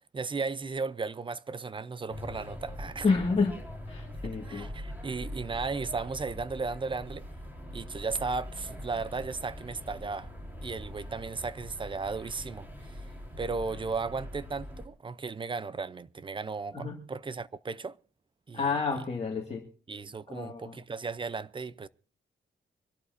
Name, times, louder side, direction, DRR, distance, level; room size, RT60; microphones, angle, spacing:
voice 1, 0.1-3.1 4.2-7.3 7.7-10.3 10.6-13.0 13.4-18.0 18.5-18.6 19.9-21.9, right 4 dB, 25° right, 0.6 m, -35 dB
sound 1, 2.1-14.9, left 1 dB, 10° right, 4.0 m, -42 dB
voice 2, 3.0-3.6 3.9-4.7 16.7-17.0 18.5-19.6 20.3-20.7, left 4 dB, 30° left, 2.0 m, -29 dB
25.0 x 12.5 x 2.7 m
wide cardioid pair, 135°, 20 cm